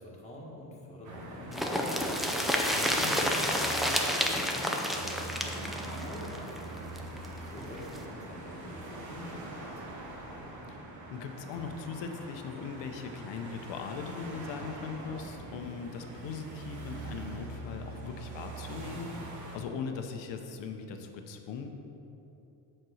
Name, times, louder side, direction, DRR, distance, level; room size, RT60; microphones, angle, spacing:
voice 1, 0.0-2.1 2.4-6.8 7.4-10.0, left 1 dB, 15° left, -4 dB, 1.6 m, -46 dB
sound 1, 1.0-19.6, right 2 dB, 40° right, 1.4 m, -43 dB
sound 2, 1.5-7.3 7.6-7.7 7.9-8.0, equal, ahead, 0.5 m, -30 dB
voice 2, 2.7-3.3 10.7-10.8 11.1-21.7, left 5 dB, 85° left, 5 dB, 0.9 m, -40 dB
7.8 x 4.4 x 6.3 m, 2.9 s
cardioid pair, 135°, 43 cm